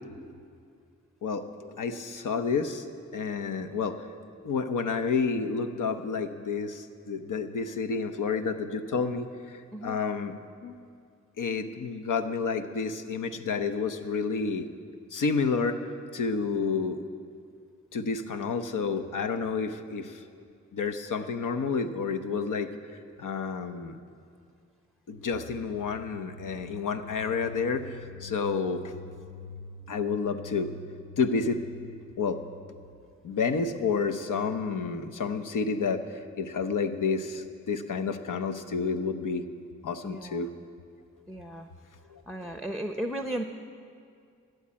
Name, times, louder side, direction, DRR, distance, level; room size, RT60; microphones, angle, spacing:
voice 1, 1.2-2.9 3.1-4.0 4.4-10.3 10.6-10.8 11.4-14.7 15.1-15.8 16.1-17.0 17.9-20.2 20.7-22.7 23.2-24.0 25.1-28.9 29.9-30.7 31.2-31.6 32.2-32.4 33.2-39.4 39.8-40.5 42.1-42.2, left 5 dB, 80° left, 9 dB, 0.8 m, -30 dB
sound 1, 25.3-33.1, left 3 dB, 45° left, 0.6 m, -46 dB
voice 2, 40.0-40.4 41.3-41.7 42.3-43.4, right 1 dB, ahead, 5 dB, 0.7 m, -35 dB
12.5 x 8.0 x 8.6 m, 2.3 s
cardioid pair, 70°, 31 cm